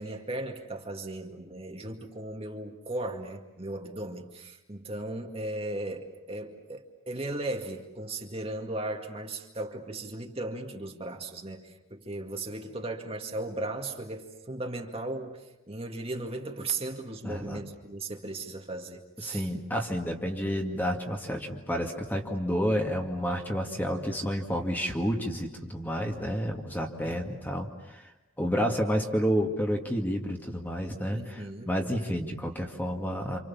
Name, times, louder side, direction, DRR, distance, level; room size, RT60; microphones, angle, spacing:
voice 1, 0.0-19.5 27.0-27.4 31.1-31.7, right 2 dB, 30° right, 3 dB, 2.1 m, -37 dB
voice 2, 17.2-17.6 19.2-28.1 28.4-33.4, equal, 10° left, 2 dB, 2.1 m, -30 dB
28.5 x 27.5 x 7.3 m, 0.96 s
head